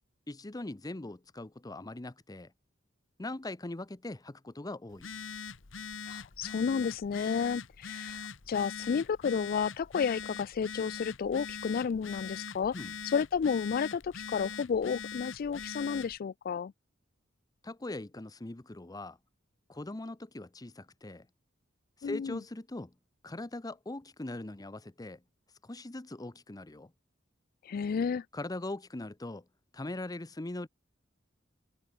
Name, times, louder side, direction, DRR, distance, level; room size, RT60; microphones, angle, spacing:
voice 1, 0.3-2.5 3.2-5.1 12.7-12.9 17.6-19.2 19.7-21.3 22.0-22.9 23.2-25.2 25.6-26.9 28.3-29.4 29.7-30.7, left 2 dB, 20° left, 0.7 m, -41 dB
Telephone, 4.9-16.2, left 6 dB, 80° left, 1.2 m, -42 dB
voice 2, 6.1-12.8 13.0-16.7 22.0-22.4 27.7-28.2, left 6 dB, 50° left, 0.3 m, -31 dB
head